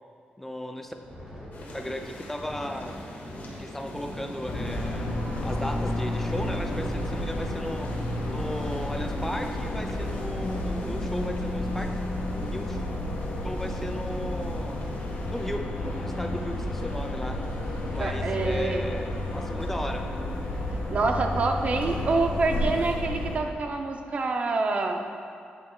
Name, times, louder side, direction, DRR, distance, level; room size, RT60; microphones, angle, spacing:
voice 1, 0.4-0.9 1.7-3.0 3.6-5.1 5.4-7.9 8.3-11.9 12.5-12.8 13.4-14.9 15.3-17.4 17.9-20.0, left 1 dB, 10° left, 4 dB, 0.4 m, -35 dB
Thunder, 0.9-9.9 10.2-10.5 10.8-11.1 11.7-12.2, equal, 15° right, 1.9 m, -44 dB
sound 1, 1.5-15.6, left 2 dB, 60° left, 1.1 m, -47 dB
sound 2, 4.5-23.4, left 1 dB, 85° left, 1.3 m, -31 dB
voice 2, 17.9-18.9 20.9-25.0, right 3 dB, 45° right, 4 dB, 0.6 m, -27 dB
8.6 x 8.5 x 2.3 m, 2.4 s
wide cardioid pair, 155°, 3 cm